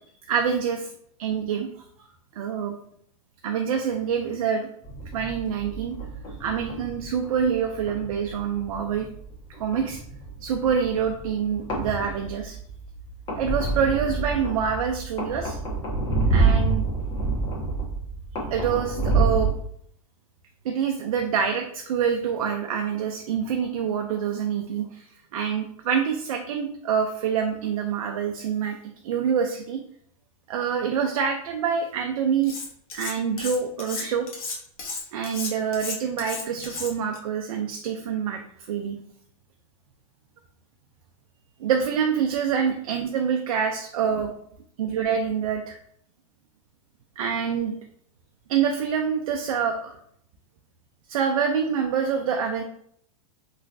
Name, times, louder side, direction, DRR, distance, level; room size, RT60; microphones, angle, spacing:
voice 1, 0.3-0.9 1.2-1.7 2.4-2.7 3.4-4.7 5.1-5.9 6.4-9.1 9.6-10.0 10.4-12.6 13.4-15.6 16.3-16.8 18.5-19.5 20.6-25.0 25.3-28.8 29.0-29.8 30.5-32.5 32.9-34.3 35.1-38.4 38.7-39.0 41.6-44.3 44.8-45.8 47.2-47.7 48.5-50.0 51.1-52.6, right 7 dB, 75° right, 4 dB, 0.5 m, -26 dB
sound 1, 4.8-19.5, right 3 dB, 25° left, 1.3 m, -28 dB
Cutlery silverware, 32.4-33.1 33.4-37.2, left 4 dB, 75° left, 1.2 m, -34 dB
3.1 x 3.1 x 2.6 m, 0.67 s
hypercardioid pair, 130°, 18 cm